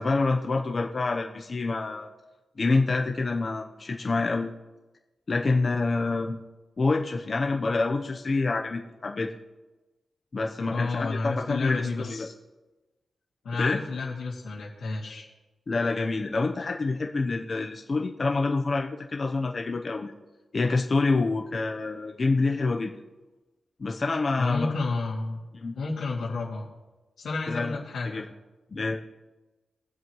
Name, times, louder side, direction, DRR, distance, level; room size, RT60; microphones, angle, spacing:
voice 1, 0.0-2.1 2.6-4.5 5.3-6.4 6.8-9.3 10.3-12.3 13.6-13.8 15.7-20.1 20.5-22.9 23.8-24.7 25.6-25.8 27.5-28.3 28.7-29.0, left 3 dB, 40° left, 1 dB, 0.9 m, -27 dB
voice 2, 10.7-12.3 13.4-15.2 24.4-25.4 25.7-26.7 27.2-28.2, left 3 dB, 85° left, -6 dB, 2.2 m, -31 dB
22.5 x 7.7 x 3.1 m, 1.1 s
wide cardioid pair, 125°, 0 cm